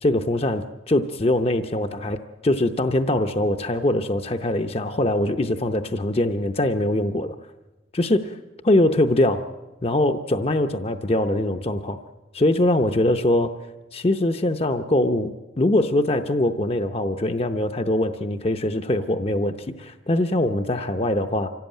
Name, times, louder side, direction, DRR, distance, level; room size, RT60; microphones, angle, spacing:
voice 1, 0.0-7.4 7.9-8.3 8.6-9.5 9.8-12.0 12.3-13.5 13.9-21.5, left 1 dB, 30° left, 8 dB, 0.7 m, -22 dB
25.5 x 16.5 x 9.0 m, 1.1 s
head